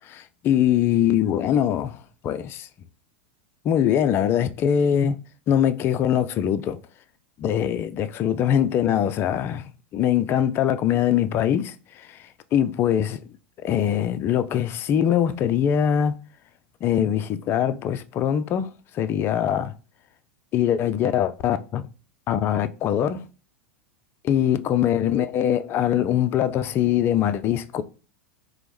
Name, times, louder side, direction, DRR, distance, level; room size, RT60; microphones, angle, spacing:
voice 1, 0.1-2.7 3.6-5.2 5.5-6.8 7.4-12.2 12.5-13.2 13.6-16.1 16.8-18.7 18.9-19.7 20.5-21.8 22.3-23.2 24.2-27.8, left 10 dB, 35° left, 0.3 m, -22 dB
4.4 x 2.0 x 3.3 m
hypercardioid pair, 95°, 7 cm